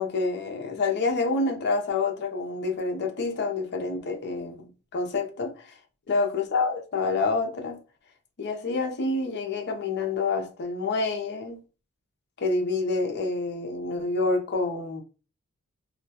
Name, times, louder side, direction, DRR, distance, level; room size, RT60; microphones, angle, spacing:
voice 1, 0.0-5.7 6.1-7.8 8.4-11.6 12.4-15.0, left 3 dB, 50° left, 0.5 m, -28 dB
2.2 x 2.1 x 2.7 m
head